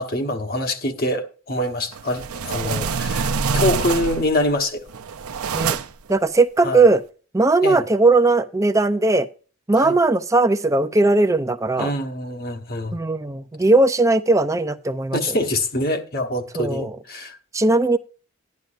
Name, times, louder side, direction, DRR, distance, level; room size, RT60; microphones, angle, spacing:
voice 1, 0.0-4.9 6.6-6.8 7.6-7.8 9.8-9.9 11.8-13.0 15.1-17.4, left 1 dB, 45° left, 1.2 m, -25 dB
sound 1, 1.9-4.4 4.9-6.1, right 5 dB, 85° right, 0.6 m, -25 dB
voice 2, 2.6-2.9 5.5-5.8 6.1-7.0 7.3-9.3 9.7-11.9 12.9-15.2 16.6-16.9 17.5-18.0, right 3 dB, 15° right, 0.5 m, -18 dB
12.5 x 10.5 x 2.5 m
head